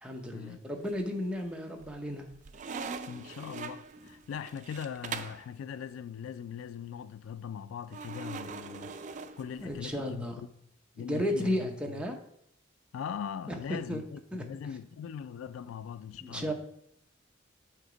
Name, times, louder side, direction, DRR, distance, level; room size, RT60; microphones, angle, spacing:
voice 1, 0.0-2.3 4.0-4.1 9.6-10.4 11.0-12.2 13.5-14.0 14.3-14.4 16.2-16.5, equal, 5° right, 0.7 m, -34 dB
sound 1, 0.8-1.4 1.8-5.5 7.9-10.0, right 5 dB, 40° right, 0.3 m, -42 dB
voice 2, 3.1-9.0 9.4-10.3 11.0-11.7 12.9-16.5, left 8 dB, 90° left, 0.3 m, -40 dB
7.9 x 2.9 x 5.0 m
head